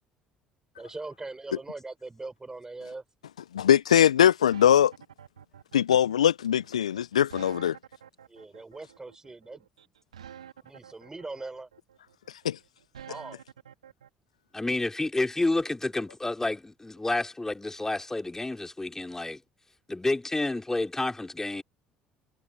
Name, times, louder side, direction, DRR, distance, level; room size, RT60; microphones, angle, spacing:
voice 1, 0.8-3.0 8.3-9.7 10.6-11.7 13.1-13.4, right 3 dB, 15° right, 3.9 m, -41 dB
voice 2, 3.5-4.9 5.7-7.8 12.4-12.6, left 9 dB, 85° left, 0.4 m, -21 dB
sound 1, 4.5-14.1, right 9 dB, 85° right, 1.9 m, -48 dB
voice 3, 14.5-19.4 19.9-21.6, left 2 dB, 15° left, 2.8 m, -29 dB
figure-of-eight pair, 55°, 3 cm